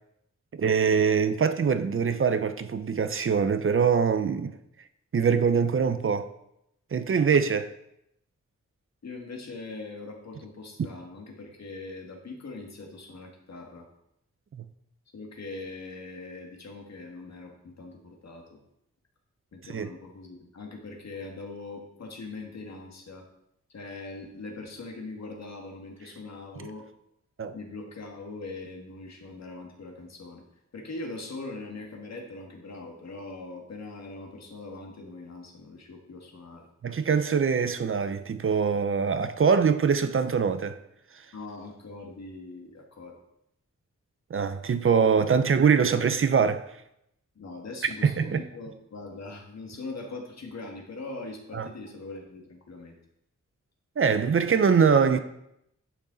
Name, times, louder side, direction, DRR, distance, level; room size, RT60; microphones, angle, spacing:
voice 1, 0.5-4.5 5.1-6.3 6.9-7.7 14.5-14.6 19.7-19.9 27.4-27.5 36.8-40.8 44.3-46.6 48.0-48.4 51.5-51.7 54.0-55.2, right 6 dB, 45° right, 0.6 m, -23 dB
voice 2, 9.0-13.9 15.1-18.6 19.5-23.3 23.7-26.8 27.5-30.4 30.7-36.7 41.3-43.2 47.4-53.0, left 3 dB, 65° left, 1.8 m, -41 dB
10.5 x 6.1 x 4.0 m
wide cardioid pair, 125°, 29 cm